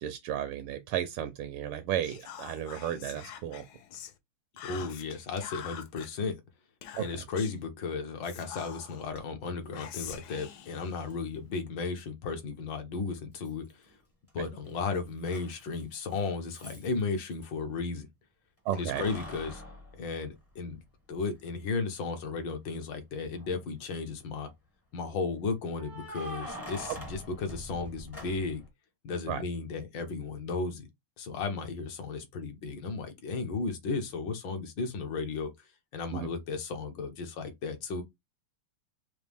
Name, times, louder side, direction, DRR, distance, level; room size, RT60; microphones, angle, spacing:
voice 1, 0.0-3.6 7.0-7.2 18.6-19.0 29.3-29.4 36.1-36.3, right 10 dB, 80° right, 1.4 m, -34 dB
Whispering, 2.0-4.2 4.6-6.1 6.8-7.6 8.2-9.1 9.7-11.6, left 9 dB, 80° left, 0.9 m, -45 dB
voice 2, 4.6-6.3 6.9-13.9 14.3-18.1 18.7-19.6 19.9-20.8 21.1-24.5 24.9-28.6 29.0-30.9 31.2-35.7 35.9-38.0, left 4 dB, 65° left, 1.5 m, -34 dB
Keys jangling, 9.1-9.2 11.1-11.2 13.4-14.0 14.3-17.5 18.7-20.8 21.3-21.4 23.2-23.8 25.7-28.7, equal, 15° left, 0.5 m, -44 dB
5.0 x 2.3 x 3.4 m
omnidirectional pair, 2.4 m